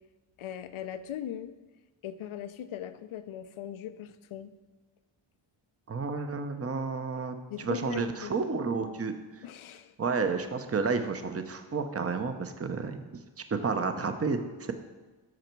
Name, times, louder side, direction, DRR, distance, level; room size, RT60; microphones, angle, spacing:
voice 1, 0.4-1.5 2.0-4.5 7.5-8.3 9.4-9.9, left 10 dB, 75° left, 12 dB, 0.7 m, -39 dB
voice 2, 5.9-9.5 10.0-14.7, right 4 dB, 30° right, 7 dB, 0.9 m, -31 dB
12.0 x 6.5 x 4.6 m, 1.2 s
cardioid pair, 70°, 49 cm